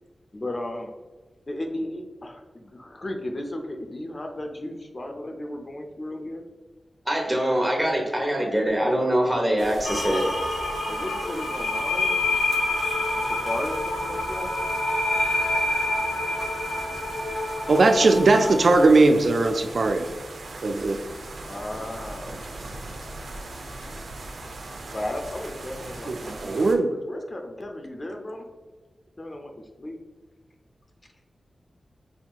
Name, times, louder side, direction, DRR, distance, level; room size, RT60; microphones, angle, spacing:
voice 1, 0.3-0.9 1.5-6.4 10.9-12.2 13.1-14.5 21.4-22.8 24.9-26.2 26.4-28.5 29.2-29.5 29.8-30.0, left 1 dB, 35° left, 3 dB, 0.5 m, -35 dB
voice 2, 7.1-10.2, right 1 dB, 10° right, -1 dB, 1.1 m, -23 dB
sound 1, 9.6-26.8, right 2 dB, 80° right, 0.7 m, -40 dB
sound 2, 9.8-18.9, left 2 dB, 70° left, 0.9 m, -27 dB
voice 3, 17.7-20.1 20.6-21.0 26.1-26.9, right 3 dB, 60° right, 5 dB, 0.3 m, -19 dB
5.5 x 2.8 x 2.3 m, 1.3 s
wide cardioid pair, 85°, 0 cm